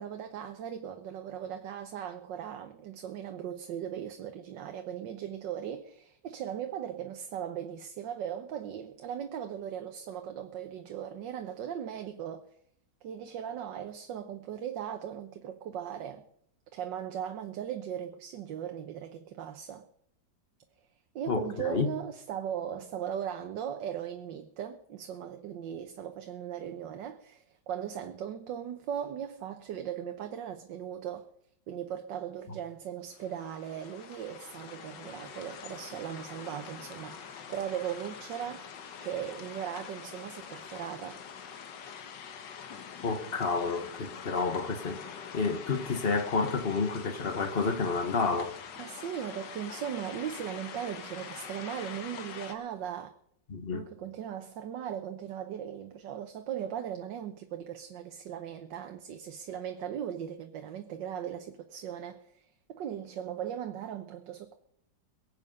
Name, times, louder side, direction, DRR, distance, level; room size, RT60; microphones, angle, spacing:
voice 1, 0.0-12.4 13.0-16.2 16.7-19.9 21.1-31.2 31.7-38.7 39.0-41.2 48.8-53.1 53.7-64.6, right 9 dB, 85° right, 1.6 m, -38 dB
voice 2, 21.3-21.9 43.0-45.0 45.3-48.6 53.5-53.9, left 4 dB, 35° left, 1.4 m, -30 dB
sound 1, 33.1-52.6, left 7 dB, 80° left, 1.8 m, -45 dB
22.5 x 8.1 x 5.4 m
omnidirectional pair, 1.9 m